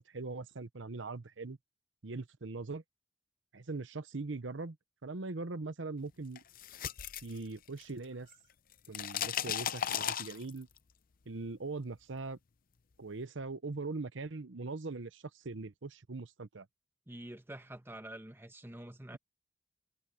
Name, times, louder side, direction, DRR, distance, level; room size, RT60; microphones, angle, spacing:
voice 1, 0.0-1.6 2.0-2.8 3.5-4.8 5.0-6.4 7.2-8.3 8.9-10.7 11.3-12.4 13.0-16.7, right 3 dB, 85° right, 0.9 m, -41 dB
sound 1, 6.3-8.0 8.3-10.8, left 9 dB, 50° left, 0.6 m, -36 dB
voice 2, 17.1-19.2, right 1 dB, 10° right, 1.2 m, -47 dB
head